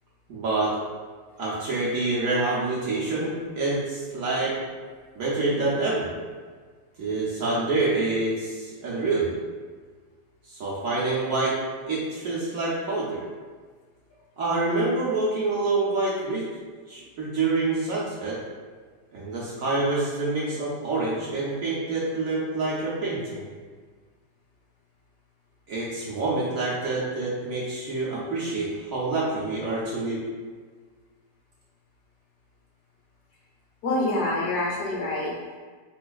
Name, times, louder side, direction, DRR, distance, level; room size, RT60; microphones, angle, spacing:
voice 1, 0.3-0.8 1.4-4.5 5.1-6.1 7.0-9.3 10.5-11.6 11.9-13.2 14.4-16.4 16.9-18.4 19.1-23.4 25.7-30.2, right 3 dB, 65° right, -7 dB, 0.9 m, -27 dB
voice 2, 33.8-35.6, left 2 dB, 65° left, -4 dB, 1.2 m, -26 dB
4.7 x 2.4 x 2.3 m, 1.5 s
omnidirectional pair, 1.9 m